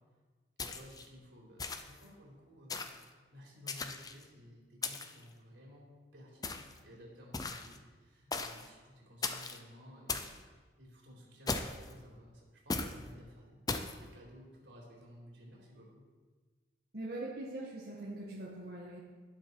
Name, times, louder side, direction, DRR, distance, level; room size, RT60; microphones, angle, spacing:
sound 1, 0.6-1.1 1.6-2.0 2.7-3.0 3.7-4.2 4.8-5.2 6.4-6.8 7.3-7.8 8.3-8.7 9.2-9.6 10.1-10.4 11.5-11.9 12.7-13.0 13.7-14.0, left 3 dB, 20° left, 0.6 m, -37 dB
voice 1, 0.6-2.9 3.3-16.0, equal, 90° right, -3 dB, 4.1 m, -55 dB
voice 2, 16.9-19.0, right 2 dB, 60° right, -5 dB, 1.7 m, -42 dB
11.5 x 11.0 x 4.7 m, 1.4 s
head